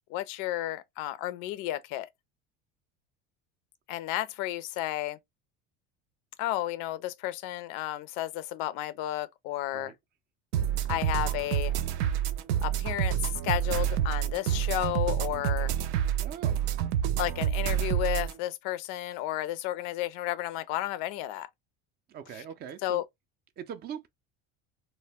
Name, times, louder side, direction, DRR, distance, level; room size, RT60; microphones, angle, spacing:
voice 1, 0.1-2.1 3.9-5.2 6.4-9.9 10.9-11.7 12.6-15.7 17.2-21.5 22.8-23.0, left 14 dB, 65° left, 0.5 m, -32 dB
sound 1, 10.5-18.3, right 10 dB, 85° right, 0.5 m, -28 dB
voice 2, 16.2-16.6 22.1-23.0 23.6-24.1, right 8 dB, 30° right, 0.4 m, -41 dB
2.1 x 2.1 x 3.3 m
supercardioid pair, 105°, 34 cm